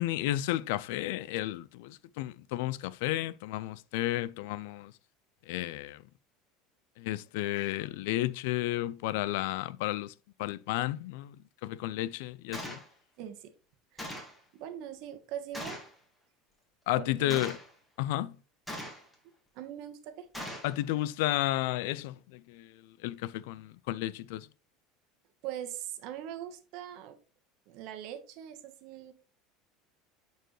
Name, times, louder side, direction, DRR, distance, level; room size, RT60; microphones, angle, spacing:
voice 1, 0.0-4.9 5.5-6.0 7.0-10.1 10.4-11.4 11.6-12.8 16.9-17.6 18.0-18.4 20.6-22.7 23.0-24.5, left 15 dB, 80° left, 0.4 m, -32 dB
Gunshot gunfire, 12.5-12.9 14.0-14.4 15.5-15.9 17.3-17.7 18.7-19.1 20.3-20.7, equal, 10° left, 1.9 m, -40 dB
voice 2, 13.2-13.5 13.9-15.8 17.0-17.5 19.5-20.3 25.4-27.2 27.7-29.1, right 10 dB, 65° right, 1.3 m, -42 dB
8.9 x 4.5 x 3.2 m
supercardioid pair, 125°, 0 cm